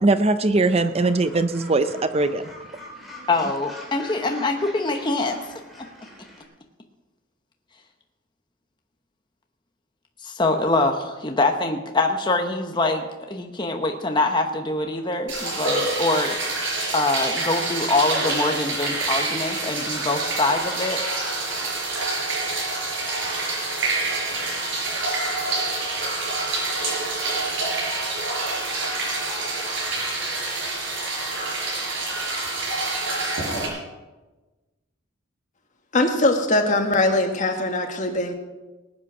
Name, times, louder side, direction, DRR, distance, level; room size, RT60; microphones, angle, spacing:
voice 1, 0.0-2.4, right 2 dB, 30° right, 11 dB, 0.5 m, -20 dB
Gull seagull, 0.6-6.4, equal, ahead, 3.3 m, -44 dB
voice 2, 3.3-5.5 10.2-16.4 16.9-21.0, left 2 dB, 25° left, 4 dB, 1.0 m, -24 dB
sound 1, 15.3-33.7, right 2 dB, 70° right, 4.9 m, -27 dB
voice 3, 35.9-38.3, left 2 dB, 40° left, 4 dB, 1.8 m, -21 dB
20.0 x 8.8 x 6.1 m, 1.2 s
head